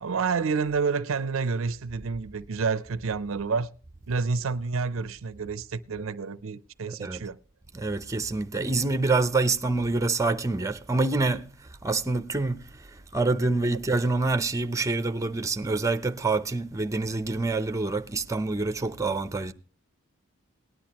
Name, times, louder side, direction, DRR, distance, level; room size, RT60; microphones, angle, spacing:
voice 1, 0.0-3.7 4.1-7.4, right 5 dB, 70° right, 0.5 m, -29 dB
voice 2, 6.9-7.2 7.7-19.5, right 3 dB, 15° right, 0.7 m, -26 dB
18.5 x 10.5 x 3.0 m
head